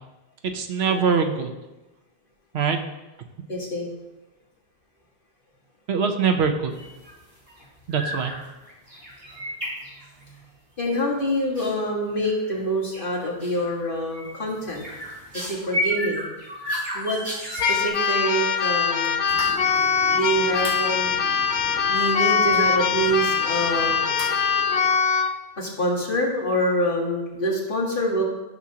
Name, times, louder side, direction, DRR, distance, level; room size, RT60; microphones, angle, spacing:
voice 1, 0.5-1.5 2.5-2.8 5.9-6.8 7.9-8.3, right 6 dB, 85° right, 5 dB, 1.1 m, -23 dB
voice 2, 3.5-3.9 10.8-14.9 15.3-16.2 16.9-17.2 17.5-19.2 20.1-21.2 21.9-24.1 25.6-28.2, equal, 55° left, -4 dB, 2.0 m, -26 dB
sound 1, 6.7-7.1 7.4-7.6 7.9-8.4 8.7-10.4 11.5-11.7 12.2-12.6 12.9-13.1 13.4-13.7 14.1-17.9, left 1 dB, 60° right, 3.6 m, -31 dB
Keyboard (musical), 17.6-25.3, left 6 dB, 90° left, 0.9 m, -22 dB
sound 2, 19.3-24.9, equal, 15° right, 2.2 m, -39 dB
12.5 x 6.1 x 2.9 m, 1.1 s
omnidirectional pair, 1.0 m